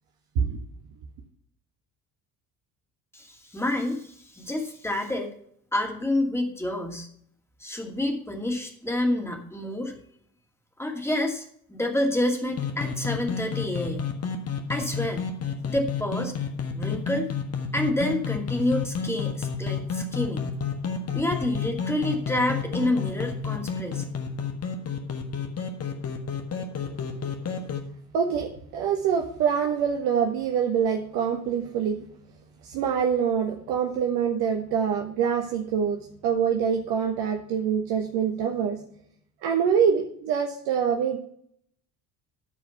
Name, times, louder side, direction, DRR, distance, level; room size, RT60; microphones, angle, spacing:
voice 1, 3.1-5.3 5.7-7.1 7.6-9.9 10.8-14.0 14.7-15.3 15.6-16.3 16.7-17.3 17.7-20.5 21.1-24.1, left 1 dB, 5° left, 1 dB, 2.4 m, -28 dB
sound 1, 12.5-27.8, left 5 dB, 35° left, 1.5 m, -31 dB
voice 2, 28.1-32.0 32.6-38.8 39.4-41.2, right 7 dB, 55° right, 2 dB, 1.3 m, -25 dB
13.5 x 4.9 x 5.7 m, 0.65 s
figure-of-eight pair, 55°, 44 cm